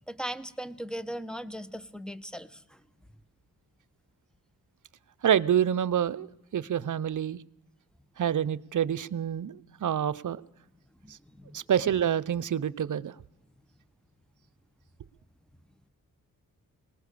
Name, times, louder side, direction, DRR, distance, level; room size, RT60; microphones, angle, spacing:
voice 1, 0.1-2.8 11.0-11.6, equal, ahead, 10 dB, 1.1 m, -39 dB
voice 2, 5.2-6.3 6.5-7.4 8.2-10.4 11.1-11.2 11.5-13.2, right 9 dB, 55° right, 15 dB, 0.8 m, -27 dB
20.5 x 19.0 x 6.9 m, 0.84 s
cardioid pair, 60°, 36 cm